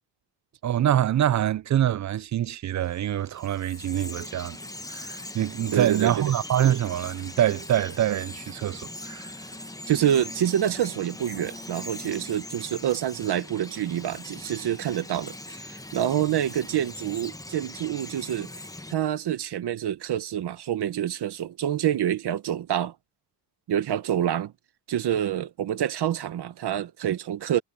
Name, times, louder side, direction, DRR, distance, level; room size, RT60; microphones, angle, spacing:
voice 1, 0.6-4.6 4.9-9.3, right 11 dB, 40° right, 0.5 m, -25 dB
Bird vocalization bird call bird song, 2.8-18.9, left 2 dB, 10° left, 1.1 m, -41 dB
voice 2, 5.7-6.3 9.9-18.5 18.9-22.9 23.7-24.5 24.9-27.6, right 10 dB, 65° right, 1.5 m, -27 dB
cardioid pair, 95°, 43 cm